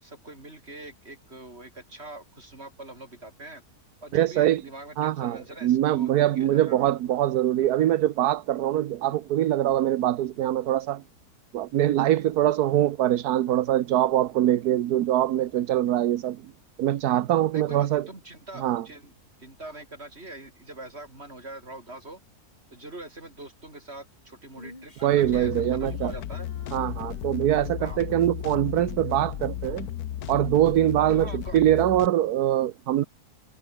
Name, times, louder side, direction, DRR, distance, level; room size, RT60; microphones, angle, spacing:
voice 1, 0.0-3.6 4.0-6.9 17.5-19.1 19.4-22.2 22.7-26.5 27.8-28.0 31.1-31.6, right 2 dB, 40° right, 5.7 m, -43 dB
voice 2, 4.1-4.6 5.0-11.0 11.5-16.4 16.8-18.1 18.5-18.9 25.0-26.1 26.7-29.9 30.3-33.0, right 12 dB, 80° right, 1.3 m, -23 dB
Female singing, 24.5-28.0, left 1 dB, 25° left, 4.6 m, -51 dB
sound 1, 25.1-32.1, left 11 dB, 70° left, 1.3 m, -34 dB
omnidirectional pair, 1.7 m